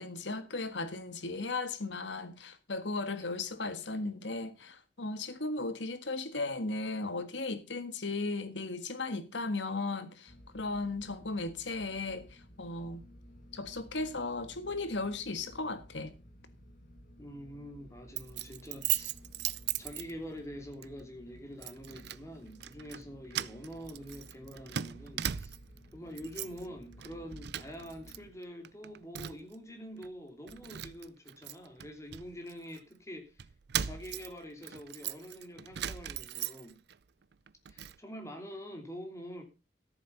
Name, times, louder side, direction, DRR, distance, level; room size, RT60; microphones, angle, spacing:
voice 1, 0.0-13.0 13.5-16.1, left 3 dB, 85° left, 1.7 m, -36 dB
sound 1, 10.3-28.3, equal, 50° left, 2.9 m, -55 dB
voice 2, 17.2-19.1 19.8-25.6 25.9-33.4 33.7-36.8 37.7-39.4, equal, 15° left, 3.0 m, -45 dB
Keys jangling, 18.2-20.5 20.8-21.0 21.6-22.2 22.5-23.0 23.3-25.8 26.1-26.7 27.0-28.2 28.4-29.5 30.0-30.1 30.5-32.8 33.4-36.9 37.3-38.0, right 11 dB, 65° right, 0.5 m, -38 dB
14.0 x 7.5 x 5.7 m
head